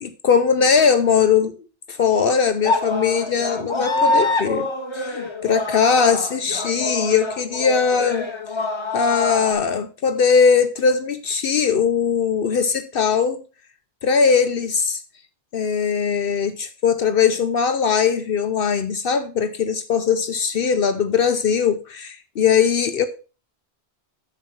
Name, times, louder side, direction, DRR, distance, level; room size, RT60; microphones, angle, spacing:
voice 1, 0.0-1.5 1.9-4.7 4.9-5.2 5.4-8.3 8.9-13.4 14.0-15.0 15.5-23.1, left 6 dB, 65° left, 0.8 m, -20 dB
sound 1, 2.6-9.5, left 2 dB, 25° left, 1.2 m, -25 dB
7.3 x 7.1 x 4.4 m
omnidirectional pair, 1.1 m